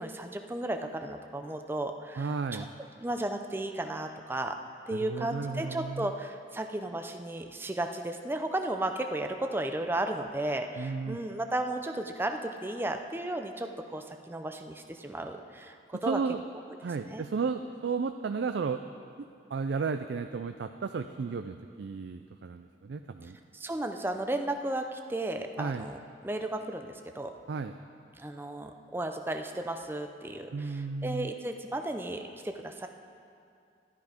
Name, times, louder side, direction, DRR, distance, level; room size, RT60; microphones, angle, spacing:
voice 1, 0.0-2.6 3.0-4.6 4.9-16.2 17.0-17.3 23.5-27.3 28.2-32.9, right 1 dB, 10° right, 5 dB, 0.5 m, -34 dB
voice 2, 2.2-2.7 4.9-6.1 10.8-11.2 16.1-16.4 16.8-18.8 19.5-23.4 25.6-25.9 27.5-27.7 30.5-31.3, right 5 dB, 65° right, 8 dB, 0.4 m, -33 dB
11.5 x 11.0 x 5.0 m, 2.4 s
head